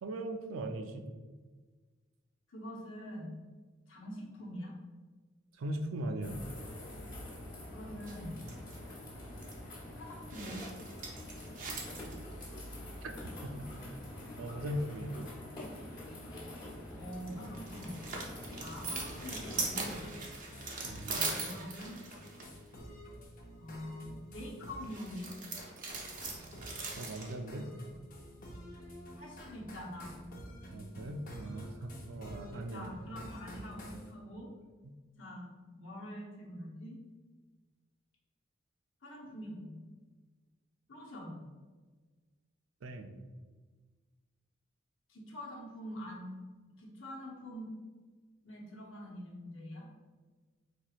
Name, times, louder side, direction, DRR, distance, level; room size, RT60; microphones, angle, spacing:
voice 1, 0.0-1.0 5.6-6.4 13.0-13.1 13.4-13.9 14.4-15.1 20.9-21.2 27.0-27.7 30.7-32.9 42.8-43.1, right 1 dB, 85° right, 6 dB, 0.4 m, -39 dB
voice 2, 2.5-3.4 3.9-4.7 7.7-8.4 9.9-10.6 16.9-18.0 18.6-20.0 20.3-20.5 21.1-22.0 23.6-25.3 29.2-30.1 32.7-34.5 35.2-37.0 39.0-39.8 40.9-41.4 45.1-46.4 46.8-47.7 48.4-49.9, equal, 70° left, -2 dB, 0.9 m, -45 dB
sound 1, 6.2-20.1, left 1 dB, 25° left, 1.0 m, -46 dB
sound 2, 8.0-9.0 9.4-9.5 10.3-12.4 16.9-22.6 24.8-27.3, right 4 dB, 40° right, 0.6 m, -41 dB
sound 3, 18.9-34.1, equal, 45° left, 0.7 m, -50 dB
4.5 x 2.9 x 2.4 m, 1.4 s
head